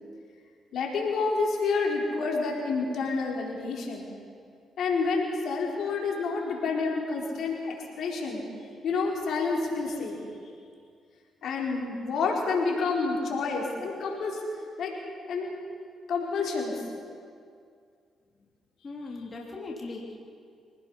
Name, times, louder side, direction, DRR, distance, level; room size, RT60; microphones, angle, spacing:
voice 1, 0.7-4.1 4.8-8.4 8.8-10.2 11.4-14.4 14.8-14.9 15.3-15.5 16.1-16.8, left 4 dB, 70° left, -1 dB, 4.3 m, -29 dB
voice 2, 18.8-20.2, left 3 dB, 40° left, -2 dB, 3.3 m, -38 dB
25.5 x 19.0 x 5.6 m, 2.3 s
supercardioid pair, 60°, 0 cm